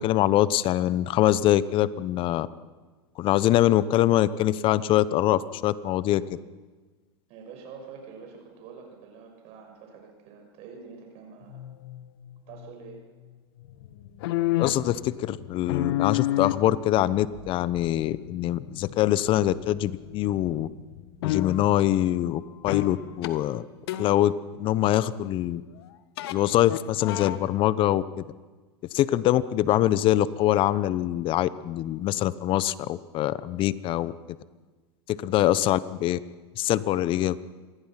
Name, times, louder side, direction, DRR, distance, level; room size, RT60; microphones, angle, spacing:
voice 1, 0.0-2.5 3.2-6.4 14.6-20.7 21.2-23.6 24.0-24.3 24.6-25.6 26.3-28.2 28.9-34.1 35.1-36.2 36.6-37.4, left 13 dB, 40° left, 17 dB, 1.0 m, -24 dB
voice 2, 7.3-11.7 12.5-13.0, right 5 dB, 50° right, 2 dB, 5.8 m, -46 dB
sound 1, 11.4-12.7 13.6-20.2 20.5-21.7 22.7-23.0 23.2-23.3 23.9-24.2 26.2-26.3 26.6-27.4, left 14 dB, 65° left, 1.6 m, -30 dB
26.5 x 20.0 x 5.9 m, 1.3 s
hypercardioid pair, 110°, 14 cm